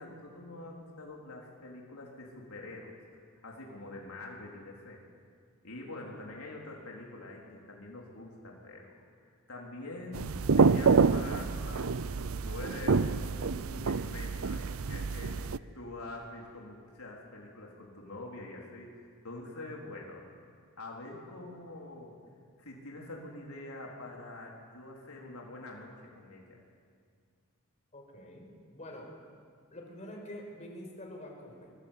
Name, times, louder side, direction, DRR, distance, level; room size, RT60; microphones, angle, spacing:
voice 1, 0.0-3.0 3.4-5.0 5.6-11.9 12.4-20.3 20.8-22.2 22.6-26.6, left 2 dB, 80° left, -2 dB, 4.0 m, -45 dB
sound 1, 10.1-15.6, right 4 dB, 70° right, 0.6 m, -27 dB
voice 2, 27.9-29.1 29.7-31.7, left 1 dB, 30° left, 1 dB, 5.6 m, -46 dB
25.0 x 23.5 x 8.4 m, 2.1 s
head